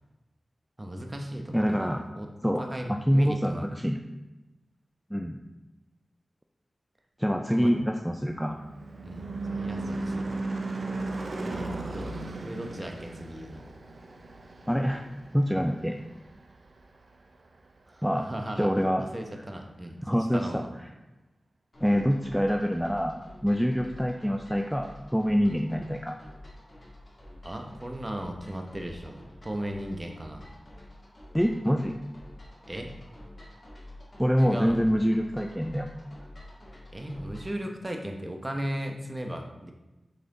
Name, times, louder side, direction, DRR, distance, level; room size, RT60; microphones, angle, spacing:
voice 1, 0.8-1.9 2.1-2.3 2.6-3.7 7.5-7.7 9.0-9.2 9.5-10.7 11.5-12.1 12.4-13.6 17.9-18.7 19.0-20.7 27.4-30.4 32.7-32.9 34.4-34.8 36.9-39.7, right 1 dB, 25° right, 3 dB, 0.9 m, -36 dB
voice 2, 1.5-2.0 2.4-4.0 5.1-5.4 7.2-8.6 14.7-15.1 15.3-16.0 18.0-18.2 18.6-19.0 20.0-20.6 21.8-23.2 23.4-26.2 31.3-32.0 34.2-35.9, equal, ahead, 3 dB, 0.4 m, -25 dB
Car passing by / Truck / Engine, 7.9-16.6, right 2 dB, 65° right, 0.6 m, -36 dB
sound 1, 21.7-37.6, left 1 dB, 45° left, 2.2 m, -49 dB
6.6 x 4.1 x 3.8 m, 1.0 s
wide cardioid pair, 65°, 0 cm